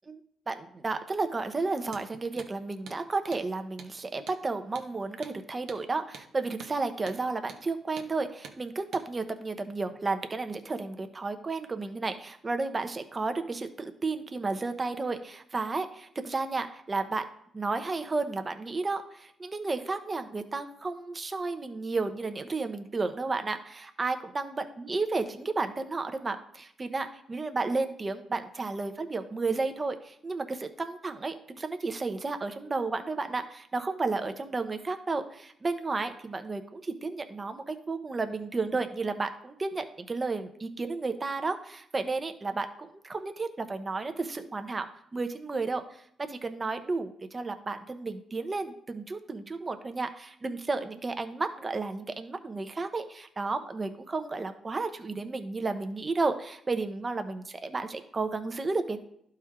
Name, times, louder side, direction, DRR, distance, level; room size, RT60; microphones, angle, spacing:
voice 1, 0.5-17.2 17.5-44.9 45.1-59.0, right 3 dB, 30° right, 7 dB, 0.9 m, -32 dB
Hammer, 1.9-2.1 2.4-2.5 2.9-3.0 3.3-3.5 3.8-3.9 4.3-4.4 4.8-4.9 5.2-5.4 5.7-5.8 6.1-6.3 6.6-6.7 7.1-7.2 7.5-7.6 8.0-8.1 8.4-8.6 8.9-9.1, right 6 dB, 75° right, 0.9 m, -46 dB
11.5 x 4.4 x 3.7 m, 0.70 s
cardioid pair, 80°, 0 cm